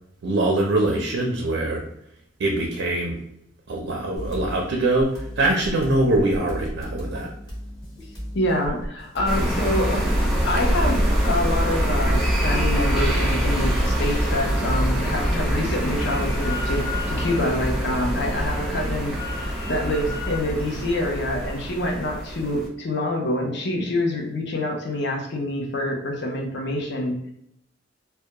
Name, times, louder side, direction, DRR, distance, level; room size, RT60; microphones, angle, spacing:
voice 1, 0.2-1.8 2.4-3.2 3.7-7.3, right 2 dB, 75° right, 0 dB, 0.5 m, -23 dB
sound 1, 4.2-14.8, equal, 20° left, 1.0 m, -35 dB
voice 2, 8.3-10.1 10.4-27.3, left 1 dB, 65° left, 1 dB, 0.6 m, -26 dB
sound 2, 9.3-22.7, equal, ahead, 0.6 m, -24 dB
Drill, 15.2-20.4, left 3 dB, 80° left, 1.0 m, -37 dB
2.3 x 2.1 x 2.8 m, 0.74 s
head